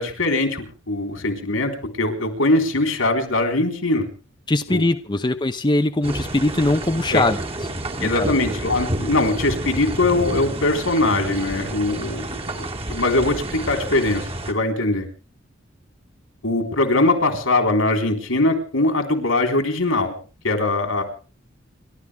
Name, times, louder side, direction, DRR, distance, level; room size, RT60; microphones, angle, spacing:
voice 1, 0.0-1.7 2.0-4.1 4.7-4.8 7.1-7.2 8.0-12.3 12.5-15.1 16.4-20.1 20.4-21.0, left 2 dB, 80° left, 4 dB, 3.9 m, -21 dB
voice 2, 4.5-7.4 8.0-8.3, left 2 dB, 20° left, 8 dB, 0.7 m, -21 dB
sound 1, 6.0-14.5, right 1 dB, 30° right, 1.9 m, -29 dB
29.5 x 12.5 x 3.5 m, 0.35 s
head